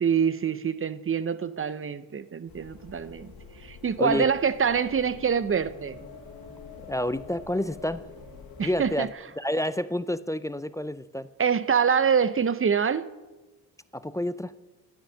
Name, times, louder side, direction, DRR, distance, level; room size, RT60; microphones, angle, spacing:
voice 1, 0.0-3.3 3.6-6.0 8.6-9.1 11.4-13.1, right 7 dB, 30° right, 15 dB, 0.6 m, -25 dB
sound 1, 2.5-9.0, left 4 dB, 50° left, 2.1 m, -46 dB
voice 2, 6.9-8.0 8.6-9.1 9.4-11.3 13.9-14.5, left 1 dB, 10° left, 15 dB, 0.3 m, -29 dB
10.0 x 9.5 x 6.2 m, 1.2 s
cardioid pair, 70°, 44 cm